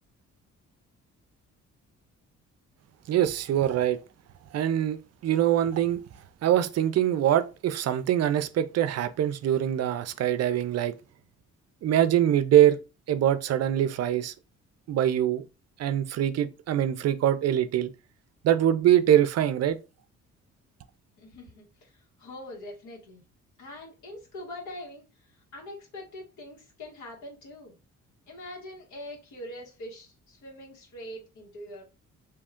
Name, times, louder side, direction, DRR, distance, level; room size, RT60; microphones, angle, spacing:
voice 1, 3.1-4.0 4.5-5.0 5.2-6.0 6.4-10.9 11.8-12.8 13.1-14.3 14.9-15.4 15.8-17.9 18.4-19.8, right 11 dB, 55° right, 0.4 m, -23 dB
voice 2, 21.2-23.2 23.6-27.7 28.3-31.8, left 1 dB, 80° left, 1.5 m, -43 dB
2.8 x 2.3 x 3.6 m
cardioid pair, 90°, 30 cm